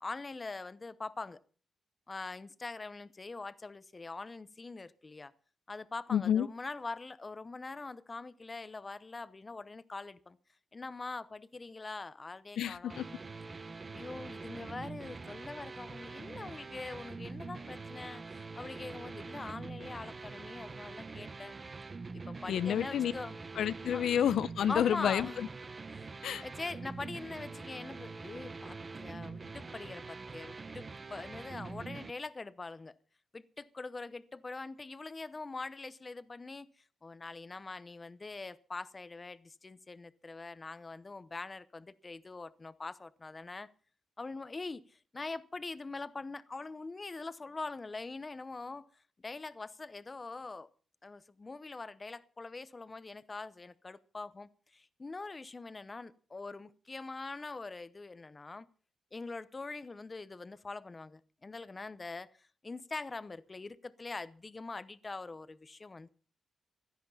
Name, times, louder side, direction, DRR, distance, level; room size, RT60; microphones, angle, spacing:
voice 1, 0.0-1.4 2.1-5.3 5.7-10.4 10.7-13.1 13.9-21.6 22.1-23.4 23.9-24.0 24.7-25.5 25.9-26.1 26.4-32.9 33.3-36.7 37.0-43.7 44.2-48.9 49.2-50.7 51.0-58.7 59.1-66.1, left 3 dB, 25° left, 0.8 m, -43 dB
voice 2, 6.1-6.5 12.6-13.0 22.5-23.1 23.6-25.5 26.2-26.4, left 9 dB, 80° left, 0.7 m, -29 dB
sound 1, 12.9-32.1, right 4 dB, 30° right, 1.1 m, -45 dB
16.5 x 13.0 x 5.6 m
wide cardioid pair, 145°, 0 cm